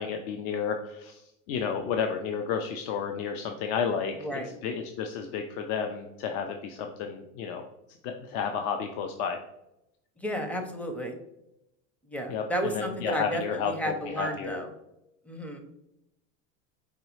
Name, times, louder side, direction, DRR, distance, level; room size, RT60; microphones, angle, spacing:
voice 1, 0.0-7.6 8.0-9.4 12.3-14.6, left 6 dB, 65° left, 5 dB, 0.6 m, -32 dB
voice 2, 4.2-4.5 10.2-11.1 12.1-14.7 15.3-15.6, equal, 5° left, 4 dB, 0.5 m, -32 dB
5.1 x 3.1 x 3.1 m, 0.86 s
supercardioid pair, 125°, 39 cm